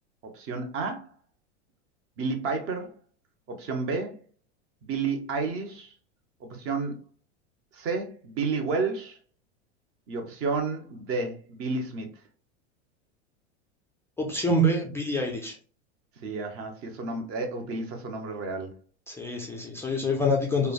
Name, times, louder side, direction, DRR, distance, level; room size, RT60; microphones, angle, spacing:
voice 1, 0.3-1.1 2.2-2.9 3.5-4.2 4.8-5.9 6.4-7.0 7.7-9.2 10.1-12.1 16.2-18.7, right 4 dB, 40° right, 5 dB, 0.8 m, -31 dB
voice 2, 14.2-15.6 19.1-20.7, equal, 10° left, -1 dB, 0.3 m, -26 dB
3.1 x 2.1 x 2.3 m, 0.38 s
hypercardioid pair, 110°, 35 cm